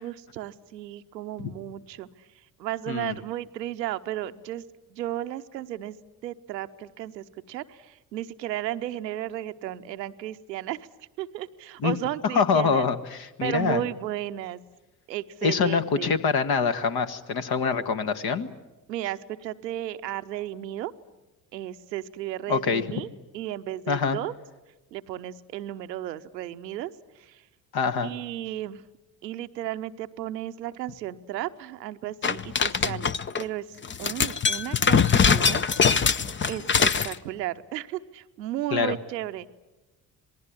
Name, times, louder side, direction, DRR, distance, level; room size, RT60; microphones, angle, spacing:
voice 1, 0.0-2.1 2.6-4.6 4.9-6.0 6.2-10.9 11.2-12.9 13.4-14.6 15.1-16.2 18.9-20.9 21.5-23.1 23.3-24.3 24.9-26.9 27.2-27.4 28.0-28.8 29.2-33.7 34.0-35.6 36.5-39.5, right 13 dB, 80° right, 10 dB, 0.9 m, -34 dB
voice 2, 12.3-13.8 15.4-18.5 22.5-22.8 23.9-24.2 27.7-28.1 38.7-38.9, left 5 dB, 45° left, 10 dB, 1.6 m, -25 dB
sound 1, 32.2-33.4 33.8-37.1, left 6 dB, 25° left, 0.8 m, -22 dB
27.0 x 19.5 x 9.8 m, 1.1 s
figure-of-eight pair, 50°, 50 cm